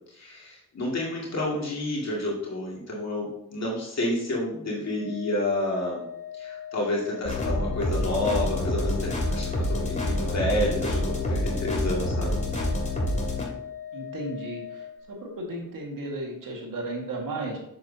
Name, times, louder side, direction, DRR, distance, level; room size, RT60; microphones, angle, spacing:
voice 1, 0.1-6.1 6.3-12.4, left 1 dB, 55° left, -4 dB, 2.2 m, -29 dB
Organ, 4.8-15.5, left 9 dB, 75° left, 2.6 m, -40 dB
sound 1, 7.2-13.4, left 1 dB, 20° left, 2.3 m, -27 dB
voice 2, 13.9-17.6, right 2 dB, 80° right, 0 dB, 1.9 m, -34 dB
7.6 x 6.8 x 2.8 m, 0.78 s
cardioid pair, 60°, 33 cm